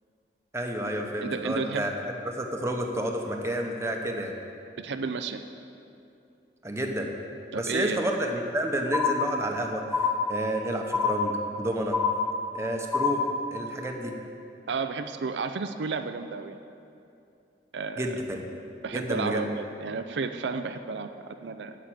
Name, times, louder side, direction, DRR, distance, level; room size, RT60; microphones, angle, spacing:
voice 1, 0.5-4.4 6.6-7.1 7.5-12.0 12.5-13.2 13.5-14.2 18.0-18.4 18.9-19.4, right 1 dB, 15° right, 2 dB, 1.0 m, -30 dB
voice 2, 1.2-1.9 4.8-5.4 7.5-8.0 14.7-16.6 17.7-18.1 18.8-21.8, right 4 dB, 80° right, 8 dB, 0.5 m, -32 dB
sound 1, 8.9-9.6 9.9-10.6 10.9-11.6 11.9-12.6 12.9-13.6, left 5 dB, 5° left, 1.2 m, -26 dB
9.2 x 7.5 x 8.9 m, 2.6 s
head